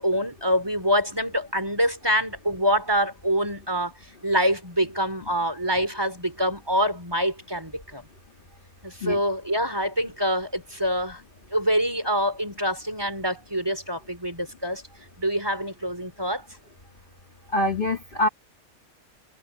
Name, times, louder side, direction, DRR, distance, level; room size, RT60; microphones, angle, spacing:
voice 1, 0.0-3.9 4.2-8.0 8.8-11.2 11.5-14.8 15.2-16.4, equal, 15° right, 3.2 m, -25 dB
voice 2, 17.5-18.3, left 1 dB, 35° left, 2.1 m, -24 dB
omnidirectional pair, 1.5 m